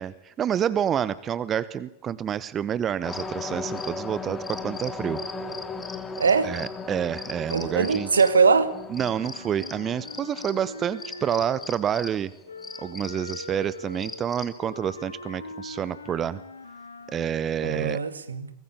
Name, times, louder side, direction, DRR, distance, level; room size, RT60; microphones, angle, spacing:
voice 1, 0.0-5.2 6.4-8.1 8.9-12.3 12.8-16.4 17.1-18.0, right 9 dB, 25° right, 1.0 m, -28 dB
sound 1, 3.0-14.6, left 4 dB, 15° left, 3.2 m, -37 dB
voice 2, 6.2-6.5 7.5-8.8 17.6-18.5, right 5 dB, 75° right, 2.1 m, -21 dB
Wind instrument woodwind instrument, 9.0-11.9 12.4-17.3, left 3 dB, 80° left, 2.5 m, -42 dB
24.5 x 21.0 x 8.5 m
figure-of-eight pair, 90°, 0 cm